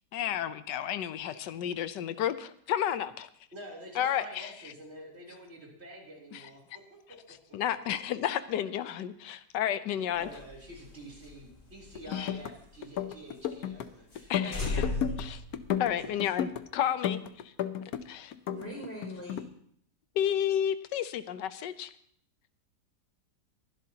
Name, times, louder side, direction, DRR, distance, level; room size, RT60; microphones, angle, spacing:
voice 1, 0.1-3.3 3.9-4.5 6.3-6.4 7.5-10.3 12.1-12.3 14.3-14.7 15.2-15.4 15.8-17.2 18.1-18.3 20.2-21.9, left 10 dB, 90° left, 13 dB, 1.4 m, -31 dB
voice 2, 3.5-7.2 10.0-15.0 15.8-16.2 16.4-16.5, right 1 dB, 35° right, -3 dB, 3.7 m, -48 dB
sound 1, 10.2-13.0 13.3-13.4 13.8-13.9 14.1-14.3 14.5-16.2, left 3 dB, 50° left, 3.3 m, -37 dB
sound 2, 11.9-12.5 12.8-13.9 14.1-15.3 15.5-16.6 17.0-18.0 18.3-19.4, left 9 dB, 65° left, 1.1 m, -33 dB
voice 3, 14.4-15.3 18.5-19.5, right 1 dB, 5° left, -2 dB, 5.6 m, -43 dB
22.0 x 11.5 x 2.9 m, 0.63 s
omnidirectional pair, 1.8 m